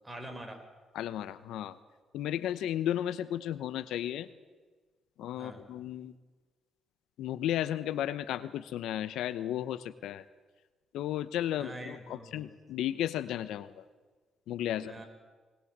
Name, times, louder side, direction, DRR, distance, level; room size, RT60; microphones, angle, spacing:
voice 1, 0.0-0.6 5.4-5.6 11.6-12.4 14.8-15.0, right 1 dB, 15° right, 5 dB, 4.5 m, -44 dB
voice 2, 0.9-1.8 2.1-4.3 5.2-6.1 7.2-10.2 10.9-13.8 14.5-14.9, left 11 dB, 85° left, 15 dB, 0.9 m, -34 dB
21.0 x 20.5 x 7.4 m, 1.3 s
cardioid pair, 90°, 0 cm